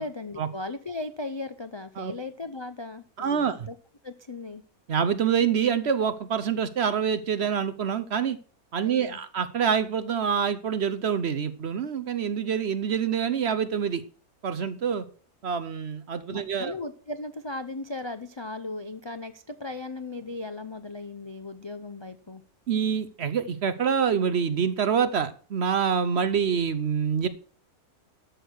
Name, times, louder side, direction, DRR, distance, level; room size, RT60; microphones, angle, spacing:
voice 1, 0.0-3.8 4.0-4.6 8.8-9.2 16.3-22.4, left 2 dB, 40° left, 9 dB, 0.3 m, -37 dB
voice 2, 3.2-3.7 4.9-8.4 8.7-14.0 14.4-15.0 15.4-16.7 22.7-27.3, right 7 dB, 55° right, 12 dB, 0.9 m, -26 dB
12.5 x 6.5 x 6.2 m, 0.41 s
omnidirectional pair, 1.6 m